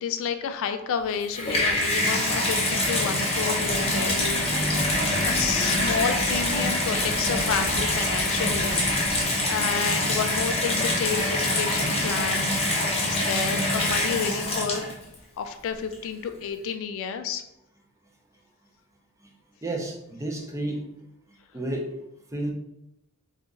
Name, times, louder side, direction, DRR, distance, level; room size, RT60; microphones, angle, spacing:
voice 1, 0.0-4.1 5.2-8.8 9.5-12.5 13.1-14.9 15.4-17.4, left 6 dB, 65° left, 8 dB, 0.3 m, -30 dB
Water tap faucet / Bathtub (filling or washing), 1.1-15.1 15.9-16.0, left 1 dB, 25° left, 0.7 m, -25 dB
sound 1, 3.4-9.2, equal, 65° right, 0.6 m, -35 dB
voice 2, 19.6-20.8 21.5-21.9 22.3-22.5, right 1 dB, 15° right, 0 dB, 0.5 m, -30 dB
2.9 x 2.4 x 3.7 m, 0.82 s
head